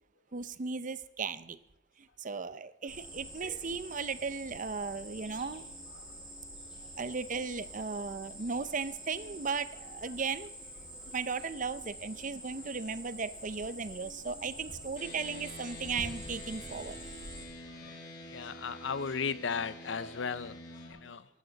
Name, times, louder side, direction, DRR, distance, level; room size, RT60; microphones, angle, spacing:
voice 1, 0.3-1.6 2.2-5.6 7.0-10.5 11.1-17.0, right 5 dB, 45° right, 14 dB, 0.6 m, -36 dB
Cricket, 2.9-17.4, right 1 dB, 5° right, 6.7 m, -47 dB
sound 1, 15.0-20.9, left 1 dB, 60° left, 7.9 m, -47 dB
voice 2, 17.8-21.3, left 5 dB, 80° left, 16 dB, 0.7 m, -36 dB
23.0 x 11.5 x 4.0 m, 0.86 s
head